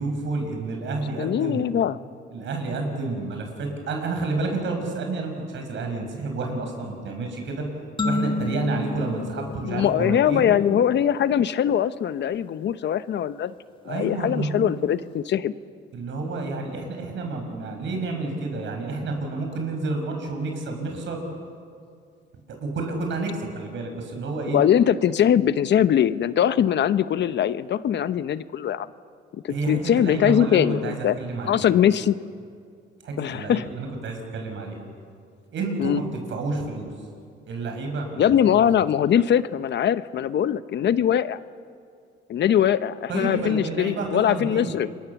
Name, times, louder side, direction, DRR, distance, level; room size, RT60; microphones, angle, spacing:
voice 1, 0.0-1.6 2.3-7.6 8.0-10.5 13.9-14.8 15.9-21.2 22.6-24.6 29.5-31.7 33.0-34.8 35.5-36.0 36.3-36.9 37.4-38.2 43.1-44.7, right 3 dB, 70° right, 3 dB, 5.9 m, -29 dB
voice 2, 1.2-2.0 9.6-13.5 13.8-15.5 24.5-28.9 29.3-31.2 31.4-32.2 33.2-33.7 35.8-36.0 38.2-41.4 42.3-44.9, left 9 dB, 65° left, 14 dB, 0.8 m, -22 dB
sound 1, 8.0-10.6, left 2 dB, 25° left, 1.6 m, -30 dB
28.5 x 23.0 x 7.2 m, 2.3 s
cardioid pair, 90°, 20 cm